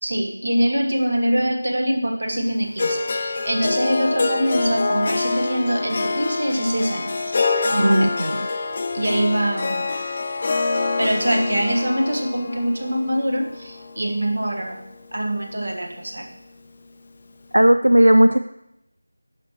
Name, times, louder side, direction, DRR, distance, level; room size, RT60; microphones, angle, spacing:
voice 1, 0.0-7.4 7.7-8.2 8.9-9.9 11.0-14.8 15.1-16.3, right 1 dB, 55° right, 2 dB, 1.4 m, -23 dB
Harp, 2.8-14.9, left 3 dB, 30° left, 0.4 m, -26 dB
voice 2, 7.8-8.4 17.5-18.4, right 1 dB, 80° right, 9 dB, 0.3 m, -15 dB
9.9 x 6.0 x 3.0 m, 0.85 s
figure-of-eight pair, 170°, 0 cm